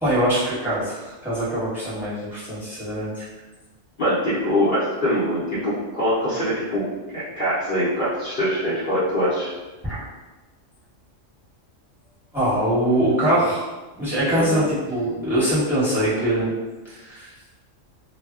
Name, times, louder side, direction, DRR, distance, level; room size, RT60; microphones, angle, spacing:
voice 1, 0.0-3.3 9.8-10.0 12.3-13.6 14.0-16.5 16.9-17.3, right 1 dB, ahead, -9 dB, 0.8 m, -23 dB
voice 2, 4.0-6.9 7.1-9.5 14.3-14.6, equal, 55° left, -10 dB, 0.7 m, -23 dB
2.1 x 2.0 x 3.4 m, 1.2 s
omnidirectional pair, 1.3 m